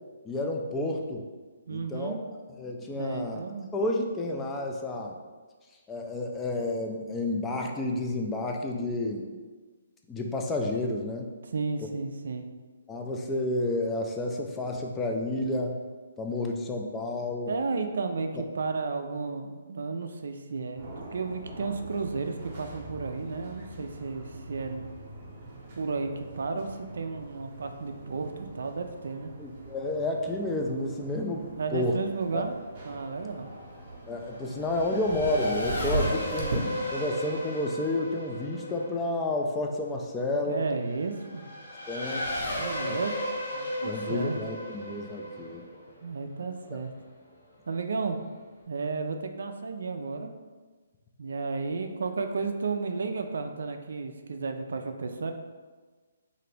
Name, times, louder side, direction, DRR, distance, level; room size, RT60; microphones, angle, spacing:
voice 1, 0.2-1.3 1.7-2.3 2.6-3.4 3.7-5.2 5.9-9.3 10.1-11.3 12.9-15.8 16.2-17.5 29.4-31.4 31.7-32.0 32.3-32.4 34.1-40.7 41.9-42.3 42.9-43.0 43.8-45.6 46.7-46.8, left 2 dB, 10° left, 1 dB, 0.3 m, -30 dB
voice 2, 1.7-2.2 3.0-3.7 11.4-12.5 17.5-24.9 25.8-29.3 31.6-32.5 32.8-33.5 40.5-41.5 42.5-43.1 43.5-44.3 46.0-46.9 47.7-48.2 48.7-50.3 51.2-55.3, right 4 dB, 70° right, 6 dB, 0.3 m, -33 dB
Sea Lions in Santa Cruz, 20.8-37.2, right 2 dB, 45° right, 0.7 m, -40 dB
Race car auto racing / Accelerating revving vroom, 32.9-47.0, left 1 dB, 70° left, 1.2 m, -36 dB
2.8 x 2.5 x 3.2 m, 1.4 s
hypercardioid pair, 145°, 0 cm